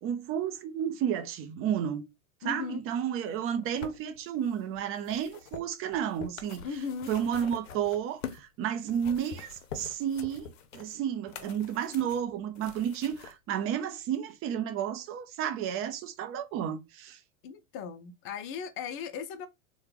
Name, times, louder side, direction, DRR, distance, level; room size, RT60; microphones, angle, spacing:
voice 1, 0.0-2.0 2.4-6.6 7.1-17.2, right 9 dB, 35° right, 0.6 m, -32 dB
voice 2, 2.4-2.8 6.6-7.1 17.4-19.5, left 6 dB, 30° left, 0.5 m, -37 dB
sound 1, 3.3-8.5 8.8-13.3 14.1-14.2, left 7 dB, 65° left, 0.7 m, -46 dB
3.2 x 2.3 x 3.0 m
hypercardioid pair, 95°, 40 cm